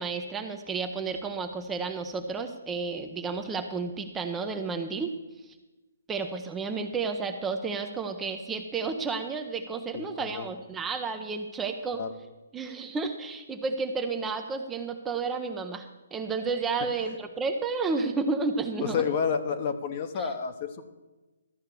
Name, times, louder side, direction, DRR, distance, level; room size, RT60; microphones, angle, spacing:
voice 1, 0.0-5.1 5.5-5.6 6.1-12.0 12.5-19.0 20.2-20.3, right 4 dB, 10° right, 5 dB, 0.7 m, -31 dB
voice 2, 9.9-10.5 12.0-12.1 18.8-20.8, left 6 dB, 35° left, 8 dB, 1.1 m, -30 dB
12.5 x 5.7 x 8.2 m, 1.1 s
hypercardioid pair, 150°, 0 cm